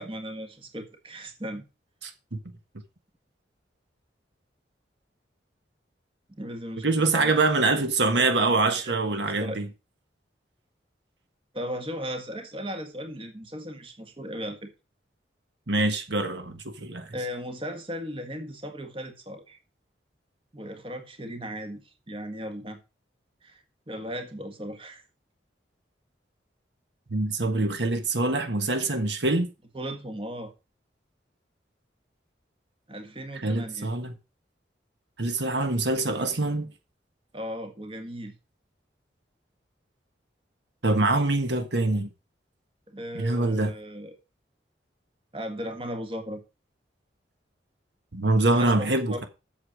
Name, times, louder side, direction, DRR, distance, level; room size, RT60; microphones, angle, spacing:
voice 1, 0.0-1.6 6.3-7.3 8.0-8.5 8.8-9.6 11.5-14.7 17.1-19.6 20.5-22.8 23.4-25.0 29.7-30.5 32.9-33.9 37.3-38.4 42.9-44.2 45.3-46.4 48.5-49.3, equal, 30° right, 1.7 m, -37 dB
voice 2, 2.0-2.4 6.8-9.7 15.7-17.1 27.1-29.5 33.3-34.1 35.2-36.7 40.8-42.1 43.2-43.7 48.1-49.2, right 2 dB, 75° right, 1.5 m, -24 dB
8.3 x 7.3 x 6.1 m
head